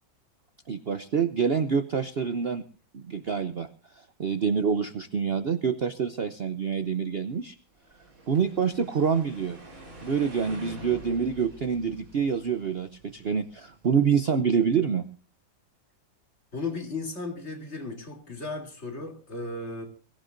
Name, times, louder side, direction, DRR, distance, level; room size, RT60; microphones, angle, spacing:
voice 1, 0.7-2.6 2.9-3.7 3.9-7.6 8.3-9.6 10.0-15.1, right 6 dB, 65° right, 0.5 m, -26 dB
sound 1, 7.8-13.9, right 1 dB, 45° right, 4.6 m, -46 dB
voice 2, 16.5-19.8, left 3 dB, 35° left, 3.3 m, -35 dB
23.0 x 15.5 x 2.6 m
omnidirectional pair, 2.1 m